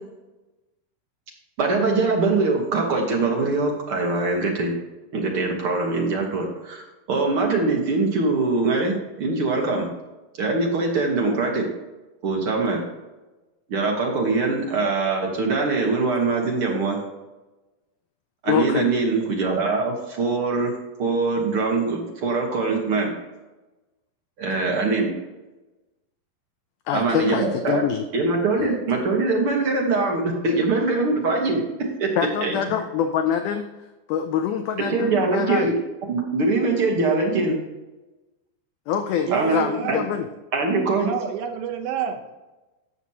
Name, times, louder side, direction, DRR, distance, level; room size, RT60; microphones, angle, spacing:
voice 1, 1.6-4.7 5.1-6.8 7.1-9.9 10.4-11.7 12.2-12.8 13.7-17.0 18.4-20.7 21.0-23.1 24.4-25.1 26.9-27.8 28.1-31.6 32.0-32.1 32.4-32.6 34.9-35.7 36.1-37.5 39.3-39.6 39.9-40.0 40.5-41.1, right 3 dB, 60° right, 0 dB, 1.5 m, -22 dB
voice 2, 18.4-18.9 26.9-28.0 28.6-28.7 32.2-33.6 34.1-35.7 38.9-40.3, left 8 dB, 85° left, 7 dB, 1.8 m, -25 dB
voice 3, 39.3-40.0 41.0-42.2, right 7 dB, 80° right, 5 dB, 2.7 m, -28 dB
15.0 x 6.1 x 2.8 m, 1.1 s
omnidirectional pair, 4.2 m